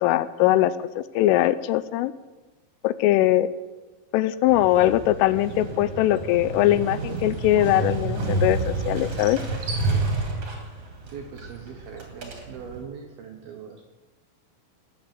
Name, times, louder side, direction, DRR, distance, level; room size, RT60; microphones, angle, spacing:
voice 1, 0.0-2.1 2.8-3.5 4.1-9.4, left 14 dB, 85° left, 16 dB, 3.1 m, -21 dB
Motorcycle, 4.5-12.8, right 3 dB, 40° right, 2.4 m, -30 dB
voice 2, 11.1-13.8, right 6 dB, 70° right, 3 dB, 2.3 m, -41 dB
19.5 x 7.8 x 8.4 m, 1.2 s
omnidirectional pair, 5.9 m